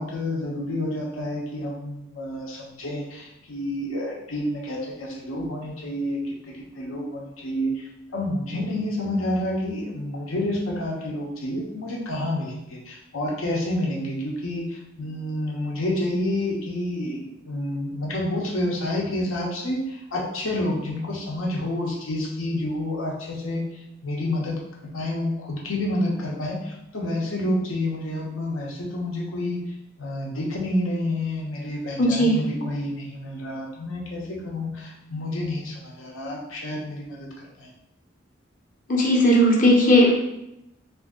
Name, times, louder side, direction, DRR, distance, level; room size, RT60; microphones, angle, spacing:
voice 1, 0.0-29.6 30.0-37.3 37.6-37.7, left 1 dB, 85° left, -2 dB, 0.8 m, -29 dB
voice 2, 32.0-32.4 38.9-40.2, equal, 40° left, -2 dB, 0.7 m, -17 dB
2.7 x 2.6 x 3.7 m, 0.86 s
head